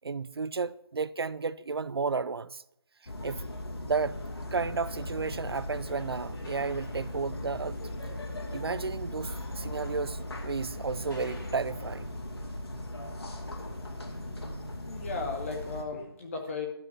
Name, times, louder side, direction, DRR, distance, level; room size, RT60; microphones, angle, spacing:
voice 1, 0.0-2.6 3.2-3.4 3.8-4.2 4.5-7.8 8.5-12.1, right 4 dB, 75° right, 0.5 m, -32 dB
sound 1, 3.1-15.8, left 1 dB, 85° left, 2.7 m, -38 dB
sound 2, 4.8-12.2, left 1 dB, 50° left, 4.2 m, -53 dB
voice 2, 14.7-16.7, left 4 dB, 35° left, 2.0 m, -36 dB
12.0 x 5.7 x 8.6 m
figure-of-eight pair, 165°, 13 cm